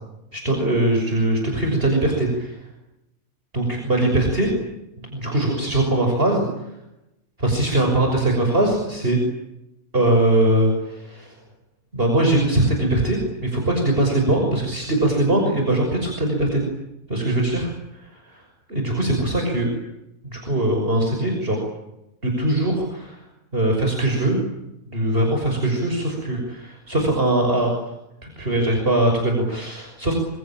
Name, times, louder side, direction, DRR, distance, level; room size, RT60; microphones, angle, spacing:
voice 1, 0.3-2.5 3.5-4.5 5.0-6.5 7.4-9.2 9.9-11.3 11.9-16.6 17.1-17.7 18.0-18.4 18.7-19.7 20.2-21.6 22.2-23.2 23.5-24.4 24.9-27.7 28.2-30.1, right 1 dB, 40° right, 2 dB, 6.5 m, -21 dB
27.0 x 24.5 x 8.9 m, 0.89 s
omnidirectional pair, 1.4 m